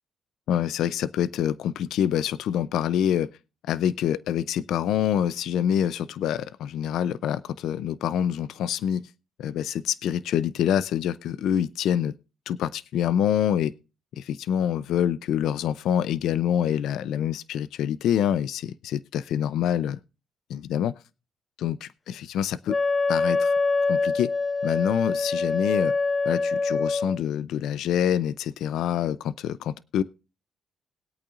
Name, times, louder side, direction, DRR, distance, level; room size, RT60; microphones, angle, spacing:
voice 1, 0.5-3.3 3.6-9.1 9.4-12.1 12.5-13.7 14.1-20.0 20.5-20.9 21.6-22.7 23.1-23.5 23.9-24.3 24.6-25.9 26.2-30.0, left 10 dB, 80° left, 17 dB, 0.5 m, -26 dB
Wind instrument woodwind instrument, 22.7-27.2, left 3 dB, 30° left, 0.6 m, -24 dB
21.0 x 8.7 x 2.5 m, 0.31 s
cardioid pair, 90°, 0 cm